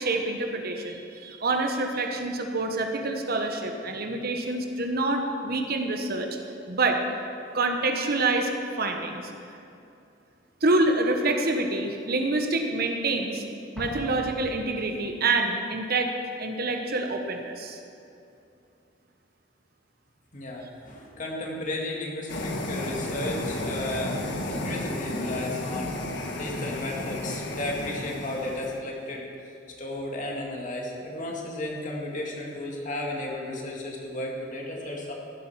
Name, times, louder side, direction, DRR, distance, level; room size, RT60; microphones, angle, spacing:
voice 1, 0.0-6.3 6.7-7.0 7.5-8.5 8.8-9.2 10.6-13.4 13.7-16.1 16.4-17.8, right 2 dB, 55° right, 4 dB, 1.1 m, -26 dB
Explosion, 13.8-15.4, equal, 5° left, 1.6 m, -41 dB
voice 2, 20.3-26.0 26.4-29.3 29.8-35.1, left 1 dB, 45° left, -1 dB, 2.1 m, -34 dB
sound 1, 22.3-28.8, left 1 dB, 65° left, 1.3 m, -32 dB
15.5 x 8.1 x 5.7 m, 2.6 s
head